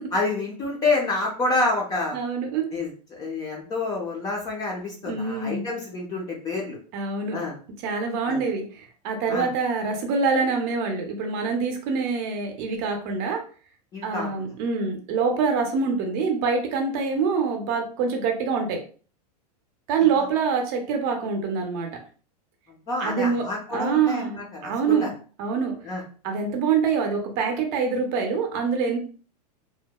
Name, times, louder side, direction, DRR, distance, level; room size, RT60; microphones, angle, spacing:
voice 1, 0.1-2.2 2.7-6.8 7.3-7.6 8.3-8.4 9.3-9.5 13.9-14.5 22.9-25.1 25.8-26.0, left 3 dB, 15° left, -1 dB, 0.4 m, -28 dB
voice 2, 2.1-2.7 5.1-5.6 6.9-7.4 7.8-13.4 14.0-18.8 19.9-21.9 23.0-23.4 23.7-25.1 25.4-25.7 26.2-29.0, right 5 dB, 40° right, 3 dB, 0.5 m, -25 dB
2.7 x 2.0 x 2.2 m, 0.39 s
supercardioid pair, 150°, 21 cm